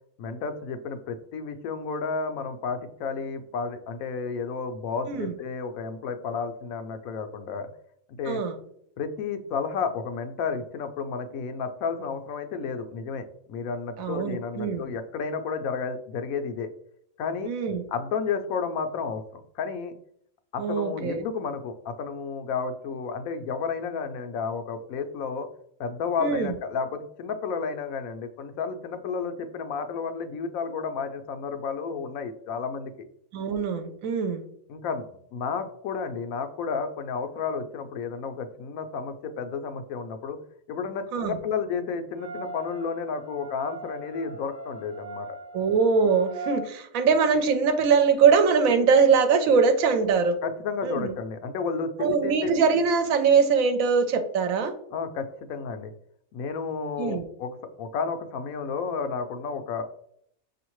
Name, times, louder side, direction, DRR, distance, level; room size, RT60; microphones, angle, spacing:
voice 1, 0.2-7.7 8.2-8.4 9.0-16.7 17.2-17.5 17.9-19.9 20.5-25.5 25.8-32.9 34.7-35.0 35.3-40.4 40.7-45.3 50.4-52.5 54.9-55.9 56.3-59.8, left 5 dB, 80° left, 8 dB, 1.0 m, -32 dB
voice 2, 8.3-8.6 14.0-14.9 17.4-17.8 20.6-21.2 26.2-26.5 33.3-34.4 41.1-41.4 45.5-50.4 50.8-51.1 52.0-54.7 57.0-57.3, right 5 dB, 80° right, 8 dB, 1.0 m, -22 dB
sound 1, 42.1-46.6, right 2 dB, 35° left, 1.1 m, -40 dB
6.2 x 2.8 x 3.0 m, 0.68 s
omnidirectional pair, 1.4 m